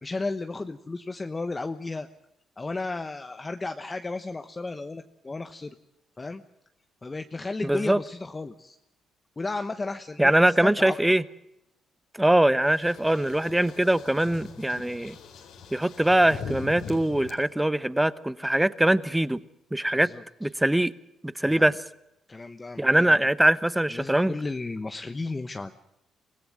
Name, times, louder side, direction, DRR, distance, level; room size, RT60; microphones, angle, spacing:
voice 1, 0.0-2.1 2.6-5.7 6.2-6.4 7.0-8.8 9.4-11.0 19.9-20.2 21.4-21.7 22.3-23.2 23.9-25.7, left 3 dB, 25° left, 1.0 m, -34 dB
voice 2, 7.6-8.0 10.2-11.2 12.2-15.2 15.7-19.4 19.7-20.1 20.4-20.9 21.2-21.8 22.8-24.3, right 1 dB, 10° right, 0.9 m, -22 dB
sound 1, 12.7-17.3, left 5 dB, 80° left, 4.1 m, -42 dB
24.5 x 17.0 x 7.7 m
cardioid pair, 90°, 0 cm